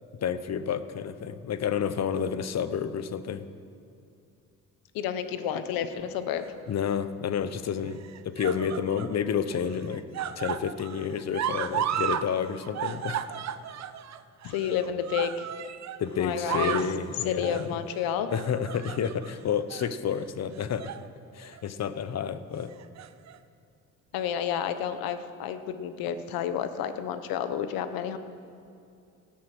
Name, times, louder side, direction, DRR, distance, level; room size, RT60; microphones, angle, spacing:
voice 1, 0.2-3.4 6.7-10.0 10.4-13.2 16.0-17.8 18.3-20.9 21.3-22.7, left 7 dB, 50° left, 13 dB, 0.9 m, -30 dB
voice 2, 4.9-6.4 14.4-15.5 16.2-16.8 17.2-18.3 24.1-28.2, left 9 dB, 85° left, 10 dB, 1.0 m, -30 dB
sound 1, 6.4-7.0 7.9-9.2 9.5-12.3 12.5-16.0 16.3-17.0 17.4-17.7 18.3-19.3 19.7-19.9 20.6-21.1 21.4-21.6 22.7-23.4 24.2-24.3, right 9 dB, 50° right, 0.7 m, -34 dB
17.0 x 8.3 x 6.1 m, 2.6 s
supercardioid pair, 75°, 35 cm